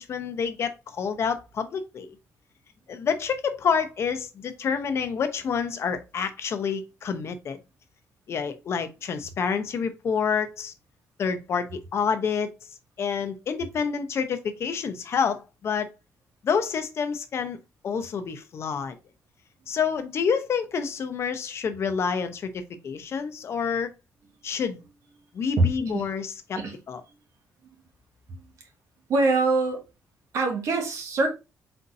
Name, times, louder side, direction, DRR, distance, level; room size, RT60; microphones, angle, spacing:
voice 1, 0.0-2.1 2.9-7.6 8.3-10.7 11.2-12.5 13.0-15.9 16.4-17.6 17.8-19.0 19.7-23.9 24.4-24.8 25.3-26.6 26.9-27.0, left 6 dB, 55° left, 0.7 m, -28 dB
voice 2, 25.6-26.1 26.6-26.8 28.3-28.4 29.1-29.8 30.3-31.3, right 3 dB, 70° right, 1.3 m, -24 dB
4.4 x 4.0 x 2.6 m
cardioid pair, 115°, 5 cm